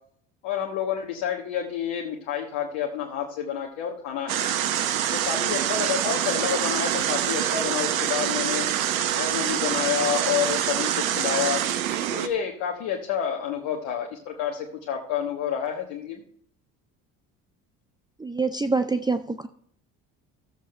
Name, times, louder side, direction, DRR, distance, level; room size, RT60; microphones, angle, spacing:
voice 1, 0.4-4.4 5.1-8.7 9.1-11.6 12.1-16.2, left 8 dB, 70° left, 0 dB, 1.4 m, -29 dB
sound 1, 4.3-12.3, right 10 dB, 85° right, 0.8 m, -25 dB
voice 2, 18.2-19.5, right 3 dB, 10° right, 10 dB, 0.5 m, -25 dB
14.5 x 7.5 x 3.2 m, 0.63 s
hypercardioid pair, 60°, 40 cm